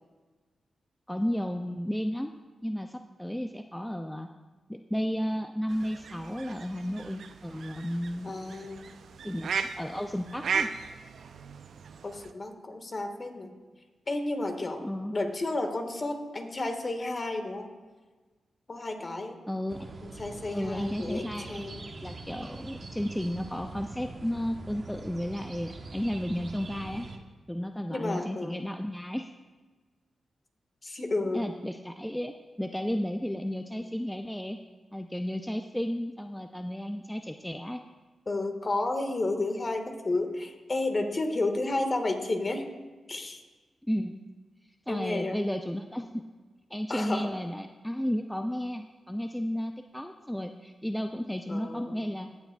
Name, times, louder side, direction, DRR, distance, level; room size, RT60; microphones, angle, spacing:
voice 1, 1.1-2.3 2.6-4.3 4.7-8.3 9.2-10.7 14.8-15.2 19.5-19.9 20.5-21.7 22.0-27.1 27.5-29.3 31.3-34.6 34.9-37.8 43.9-44.2 44.9-46.2 46.7-52.3, equal, 5° left, 6 dB, 0.5 m, -33 dB
sound 1, 5.7-12.3, right 6 dB, 75° right, 0.4 m, -37 dB
voice 2, 8.2-8.9 12.0-13.5 14.1-14.8 15.1-17.7 18.7-19.4 20.0-21.8 27.9-28.6 30.8-31.5 38.3-42.6 43.1-43.4 44.9-45.4 46.9-47.3 51.5-52.0, left 2 dB, 45° left, 5 dB, 1.5 m, -32 dB
sound 2, 19.7-27.2, right 3 dB, 55° right, 0.9 m, -43 dB
16.5 x 7.0 x 2.3 m, 1.3 s
supercardioid pair, 45°, 0 cm